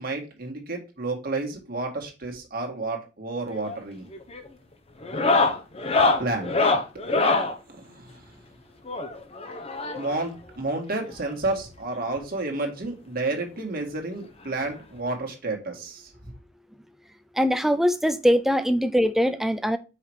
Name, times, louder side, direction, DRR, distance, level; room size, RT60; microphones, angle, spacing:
voice 1, 0.0-4.1 6.2-6.5 7.7-8.2 9.9-16.1, right 2 dB, 50° right, 1.8 m, -31 dB
sound 1, 3.5-3.8 4.1-4.5 5.0-7.5 8.9-10.2 11.3-11.4 11.6-11.7 12.2-12.3 13.6-13.7 15.0-15.1, left 3 dB, 30° left, 0.9 m, -24 dB
voice 2, 17.4-19.8, equal, ahead, 0.5 m, -22 dB
5.8 x 5.0 x 4.6 m
head